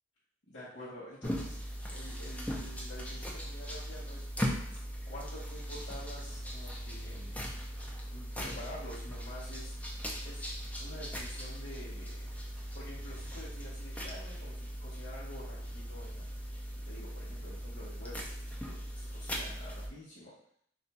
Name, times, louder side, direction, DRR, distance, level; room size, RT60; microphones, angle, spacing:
voice 1, 0.5-1.6 1.9-4.2 4.7-4.8 5.0-7.4 8.1-9.7 10.2-10.5 10.8-12.3 12.7-16.2 16.9-18.3 18.6-18.8 19.1-20.3, equal, 85° left, -11 dB, 0.9 m, -48 dB
sound 1, 1.2-19.9, equal, 10° left, 0.4 m, -39 dB
2.5 x 2.2 x 4.0 m, 0.66 s
head